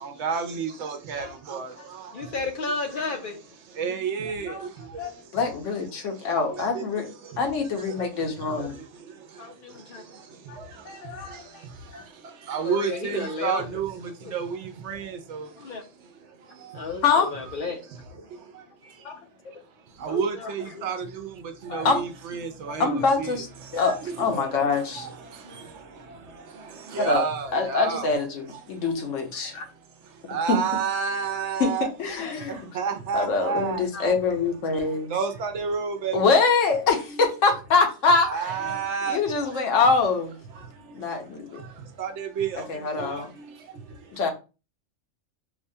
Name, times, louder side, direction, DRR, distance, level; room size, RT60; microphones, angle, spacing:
voice 1, 0.0-1.7 2.4-2.5 3.8-4.6 6.4-6.8 12.5-13.9 14.3-14.6 14.9-15.5 20.0-21.1 21.7-23.3 23.8-24.0 24.5-24.6 25.0-25.1 26.9-28.1 30.3-31.9 32.3-33.8 35.1-36.2 37.1-37.3 38.2-39.2 42.0-42.6 43.0-43.2, right 6 dB, 70° right, 0.9 m, -29 dB
voice 2, 2.1-3.4 9.4-10.0 12.6-13.6 14.2-14.3 15.6-15.8 16.7-17.8 20.1-20.8 22.7-22.8 33.9-34.1, left 3 dB, 55° left, 0.6 m, -33 dB
voice 3, 5.0-7.1 7.4-8.7 10.5-10.6 10.8-11.6 11.9-12.0 17.0-17.3 19.0-19.2 21.7-22.0 22.8-23.5 23.7-25.1 27.0-27.2 27.5-29.7 30.3-30.6 31.6-32.6 33.1-35.1 36.1-38.7 39.1-40.3 40.9-41.6 42.5-43.3 44.1-44.3, left 4 dB, 75° left, 1.1 m, -24 dB
4.7 x 2.2 x 2.7 m
omnidirectional pair, 1.3 m